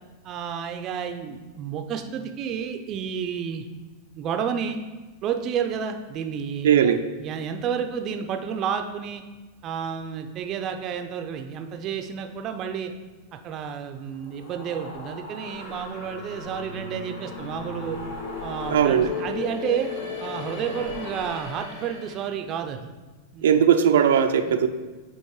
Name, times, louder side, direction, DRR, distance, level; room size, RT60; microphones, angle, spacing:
voice 1, 0.2-3.7 4.1-4.8 5.2-9.2 9.6-12.9 13.3-18.0 18.4-19.9 20.2-22.8 23.3-23.6 24.5-24.6, right 7 dB, 30° right, 6 dB, 0.5 m, -31 dB
voice 2, 6.6-7.0 18.7-19.1 23.4-24.7, right 8 dB, 90° right, 6 dB, 0.5 m, -18 dB
sound 1, 14.1-22.4, left 4 dB, 70° left, 1.1 m, -36 dB
7.1 x 2.9 x 4.8 m, 1.2 s
supercardioid pair, 150°, 0 cm